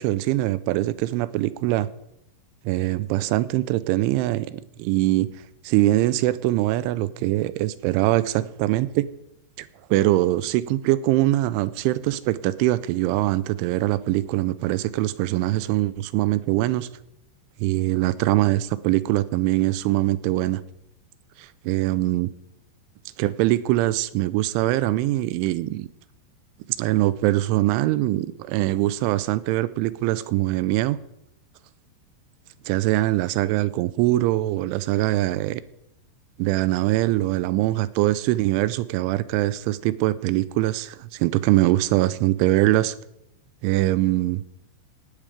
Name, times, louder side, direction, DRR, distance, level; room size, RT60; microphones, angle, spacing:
voice 1, 0.0-1.9 2.7-5.3 5.6-9.1 9.6-16.9 17.6-20.6 21.4-22.3 23.2-25.9 26.8-31.0 32.7-35.6 36.4-43.0 43.6-44.4, right 16 dB, 85° right, 17 dB, 3.1 m, -23 dB
17.5 x 11.0 x 5.1 m, 0.82 s
omnidirectional pair, 5.5 m